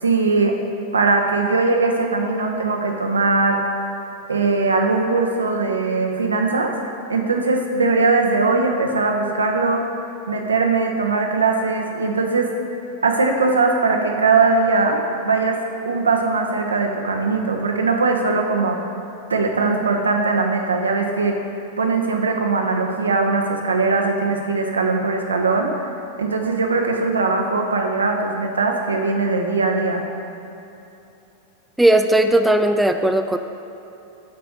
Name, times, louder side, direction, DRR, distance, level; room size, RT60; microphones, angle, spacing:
voice 1, 0.0-0.6 0.9-3.6 4.3-6.8 7.1-9.9 10.3-12.5 13.0-18.8 19.3-21.4 21.8-25.7 26.2-30.0, right 3 dB, 75° right, 2 dB, 1.0 m, -20 dB
voice 2, 31.8-33.4, right 1 dB, 5° right, 6 dB, 0.4 m, -17 dB
11.5 x 4.6 x 6.4 m, 2.9 s
figure-of-eight pair, 90°, 0 cm